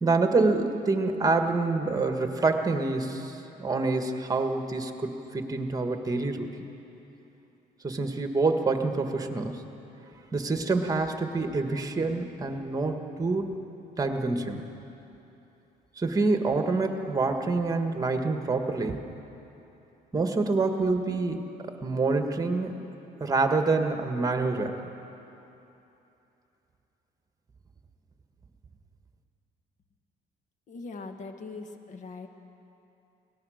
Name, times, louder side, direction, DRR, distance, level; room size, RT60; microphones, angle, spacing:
voice 1, 0.0-6.5 7.8-9.6 10.3-13.6 14.0-14.6 16.0-19.0 20.1-22.8 23.2-24.8, right 3 dB, 20° right, 5 dB, 1.7 m, -27 dB
voice 2, 30.7-32.3, left 3 dB, 45° left, 6 dB, 1.7 m, -41 dB
24.0 x 18.0 x 6.5 m, 3.0 s
cardioid pair, 110°, 17 cm